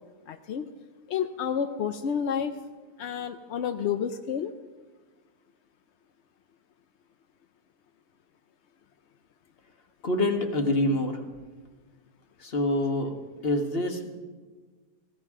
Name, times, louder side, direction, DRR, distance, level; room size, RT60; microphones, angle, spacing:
voice 1, 0.3-0.7 1.1-2.6 3.0-4.5, left 8 dB, 65° left, 8 dB, 0.7 m, -30 dB
voice 2, 10.0-11.2 12.4-13.1 13.4-14.1, left 1 dB, 40° left, 4 dB, 1.6 m, -26 dB
19.0 x 16.5 x 3.7 m, 1.4 s
omnidirectional pair, 1.7 m